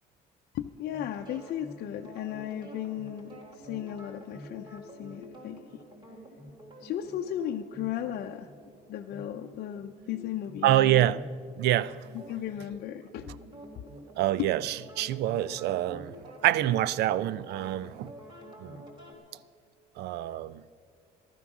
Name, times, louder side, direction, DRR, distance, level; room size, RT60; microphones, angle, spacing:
voice 1, 0.5-5.8 6.8-8.5 8.9-11.2 12.1-13.3 14.4-14.5, left 11 dB, 65° left, 0.6 m, -35 dB
sound 1, 0.9-19.1, equal, 30° right, 3.6 m, -48 dB
voice 2, 10.6-11.2 11.6-12.1 14.2-18.1 18.6-18.8 20.0-20.6, right 13 dB, 75° right, 0.5 m, -26 dB
15.0 x 12.5 x 6.1 m
cardioid pair, 110°, 17 cm